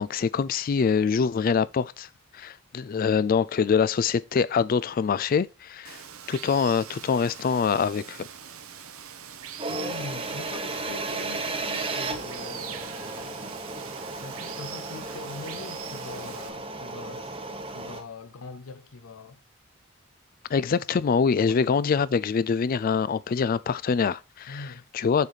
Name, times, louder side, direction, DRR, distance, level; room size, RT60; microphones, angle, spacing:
voice 1, 0.0-2.1 2.3-6.0 6.3-8.3 20.5-24.7 24.9-25.3, left 6 dB, 45° left, 0.3 m, -24 dB
Water, 5.8-16.5, right 9 dB, 90° right, 0.8 m, -42 dB
sound 1, 9.6-18.0, right 3 dB, 25° right, 0.9 m, -34 dB
voice 2, 9.7-13.6 14.1-17.4 17.7-19.4 20.8-20.9 21.4-21.7 24.5-24.9, left 3 dB, 85° left, 0.6 m, -42 dB
6.8 x 4.9 x 4.0 m
head